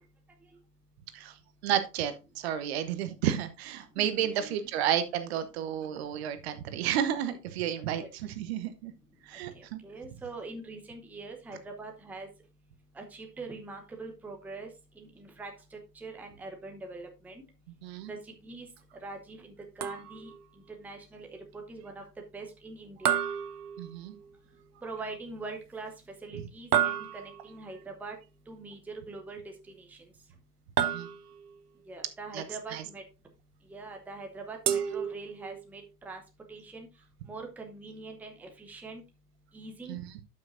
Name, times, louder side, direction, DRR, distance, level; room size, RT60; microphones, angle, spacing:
voice 1, 1.6-8.9 9.3-9.8 17.8-18.1 23.8-24.1 30.8-31.1 32.3-32.4 32.7-32.8 39.9-40.0, right 10 dB, 40° right, 10 dB, 0.9 m, -31 dB
voice 2, 4.0-4.7 8.0-8.1 9.3-12.3 12.9-14.7 14.9-17.4 18.1-18.7 19.0-22.0 22.3-23.2 24.8-28.2 28.5-30.1 31.9-33.0 33.7-36.2 36.5-36.9 37.2-39.0 39.5-40.0, right 3 dB, 5° right, 3 dB, 0.9 m, -43 dB
sound 1, 19.8-20.4 23.1-24.3 26.7-27.6 30.8-31.6 34.7-35.7, right 9 dB, 70° right, 0.9 m, -30 dB
12.0 x 5.8 x 2.6 m, 0.27 s
figure-of-eight pair, 110°, 47 cm